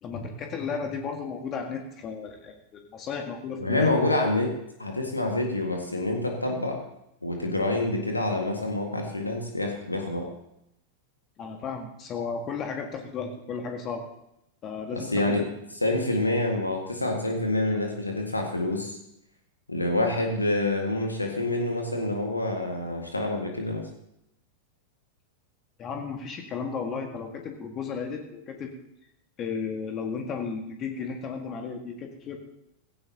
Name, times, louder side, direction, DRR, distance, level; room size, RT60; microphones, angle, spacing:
voice 1, 0.0-3.9 11.4-14.0 14.6-15.4 25.8-28.7 29.4-32.4, left 5 dB, 30° left, 3 dB, 1.7 m, -34 dB
voice 2, 3.6-4.5 4.8-6.8 7.2-10.3 14.9-15.4 15.8-19.0 19.7-23.9, left 2 dB, 85° left, 2 dB, 1.9 m, -27 dB
16.5 x 16.0 x 2.9 m, 0.80 s
figure-of-eight pair, 90°, 0 cm